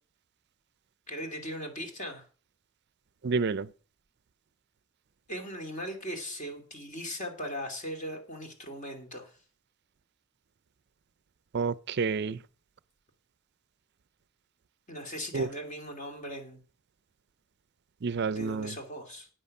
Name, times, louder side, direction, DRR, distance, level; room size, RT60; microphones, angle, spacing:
voice 1, 1.1-2.2 5.3-9.3 14.9-16.6 18.3-19.3, equal, 35° left, 2.5 m, -39 dB
voice 2, 3.2-3.7 11.5-12.4 15.3-15.5 18.0-18.8, right 4 dB, 50° right, 0.4 m, -29 dB
11.5 x 9.1 x 5.3 m
head